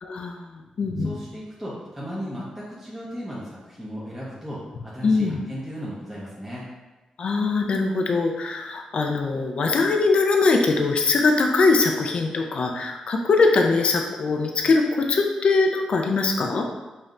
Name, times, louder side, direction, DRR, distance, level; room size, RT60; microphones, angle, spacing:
voice 1, 0.0-1.2 5.0-5.4 7.2-16.6, left 3 dB, 55° left, 3 dB, 0.4 m, -22 dB
voice 2, 1.0-6.6, equal, 5° right, -8 dB, 0.7 m, -36 dB
5.1 x 2.7 x 2.4 m, 1.1 s
wide cardioid pair, 120°, 2 cm